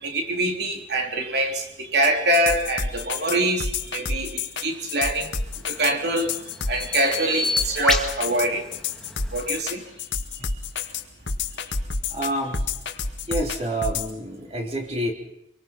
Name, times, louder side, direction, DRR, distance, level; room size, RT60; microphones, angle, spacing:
voice 1, 0.0-5.3 5.7-6.3 6.7-8.6 9.3-9.8, right 1 dB, 60° right, 3.6 m, -24 dB
sound 1, 2.0-14.1, left 4 dB, 75° left, 1.9 m, -29 dB
Bird vocalization bird call bird song, 5.4-9.6, left 2 dB, 5° left, 2.1 m, -30 dB
voice 2, 12.1-12.6 13.3-15.1, right 1 dB, 35° right, 3.4 m, -28 dB
25.5 x 24.0 x 5.8 m
head